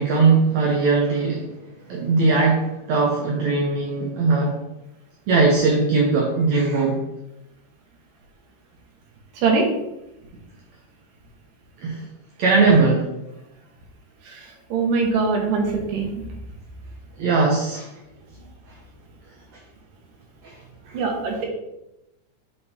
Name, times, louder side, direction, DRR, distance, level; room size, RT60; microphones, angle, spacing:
voice 1, 0.0-1.5 1.9-4.6 5.3-7.0 11.8-12.0 12.4-13.1 17.2-17.9 20.4-20.5 20.9-21.0, right 4 dB, 70° right, 0 dB, 1.9 m, -19 dB
voice 2, 14.7-16.2 20.9-21.5, right 4 dB, 90° right, 0 dB, 3.0 m, -22 dB
8.6 x 3.5 x 4.3 m, 0.91 s
omnidirectional pair, 3.8 m